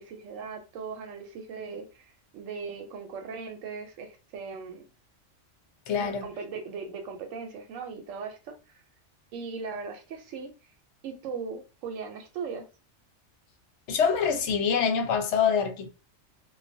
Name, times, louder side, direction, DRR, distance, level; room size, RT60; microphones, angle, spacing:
voice 1, 0.0-4.9 6.0-8.8 9.3-10.5 11.0-12.7, right 5 dB, 85° right, 0.9 m, -38 dB
voice 2, 5.9-6.2 13.9-15.9, left 6 dB, 70° left, 0.8 m, -25 dB
2.3 x 2.1 x 2.5 m
omnidirectional pair, 1.3 m